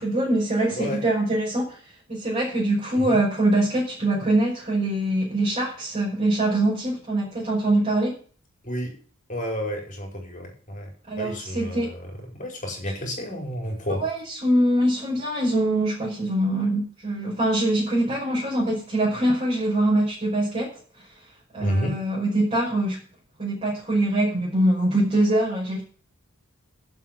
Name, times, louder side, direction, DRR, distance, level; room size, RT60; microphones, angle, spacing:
voice 1, 0.0-1.8 2.1-8.1 11.1-11.9 14.0-20.7 21.5-23.0 23.4-25.8, right 1 dB, 30° right, -7 dB, 5.5 m, -23 dB
voice 2, 0.7-1.0 2.9-3.2 8.6-8.9 9.3-10.9 11.2-14.0 21.6-21.9, equal, 35° left, 1 dB, 5.1 m, -30 dB
11.5 x 7.8 x 7.7 m, 0.42 s
head